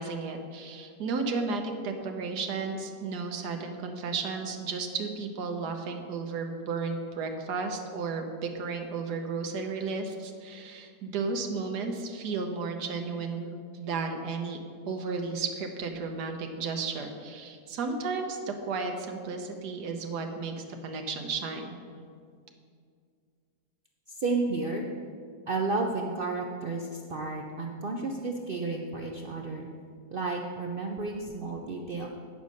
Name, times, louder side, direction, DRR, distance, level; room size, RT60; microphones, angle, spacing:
voice 1, 0.0-14.6 14.9-21.8, right 4 dB, 90° right, 4 dB, 1.5 m, -33 dB
voice 2, 24.1-24.9 25.5-29.7 30.1-32.1, right 3 dB, 75° right, 2 dB, 0.5 m, -32 dB
9.4 x 5.3 x 6.3 m, 2.2 s
omnidirectional pair, 1.7 m